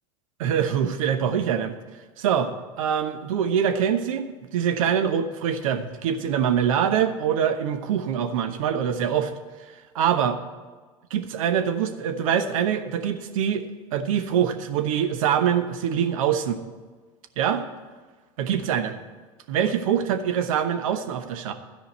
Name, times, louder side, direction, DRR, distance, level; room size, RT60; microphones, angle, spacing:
voice 1, 0.4-1.7 2.2-2.5 2.8-4.3 4.5-9.3 10.0-10.3 11.1-13.6 13.9-16.6 17.4-17.6 18.4-19.0 19.5-21.5, right 8 dB, 75° right, 8 dB, 1.0 m, -24 dB
13.0 x 5.0 x 9.0 m, 1.4 s
hypercardioid pair, 95°, 17 cm